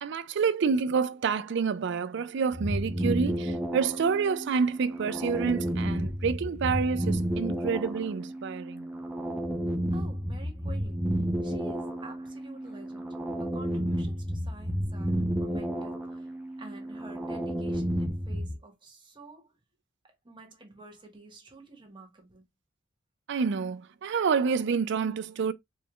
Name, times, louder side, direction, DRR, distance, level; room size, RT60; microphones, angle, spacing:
voice 1, 0.0-8.9 23.3-25.5, right 5 dB, 65° right, 0.4 m, -28 dB
sound 1, 2.5-18.6, equal, 5° right, 0.6 m, -32 dB
voice 2, 9.9-11.1 11.4-16.3 16.6-19.5 20.0-22.4, right 2 dB, 25° right, 1.2 m, -49 dB
4.5 x 3.2 x 2.2 m
head